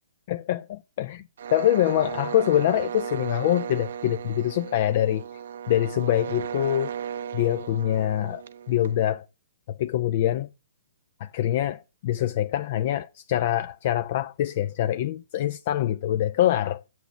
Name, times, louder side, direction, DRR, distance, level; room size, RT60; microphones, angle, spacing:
voice 1, 0.3-1.2 1.5-5.2 5.7-6.9 7.3-8.4 8.7-9.3 9.7-10.5 11.2-16.8, left 12 dB, 50° left, 0.4 m, -24 dB
sound 1, 1.4-9.1, right 8 dB, 65° right, 0.6 m, -35 dB
6.9 x 6.1 x 7.1 m
hypercardioid pair, 125°, 0 cm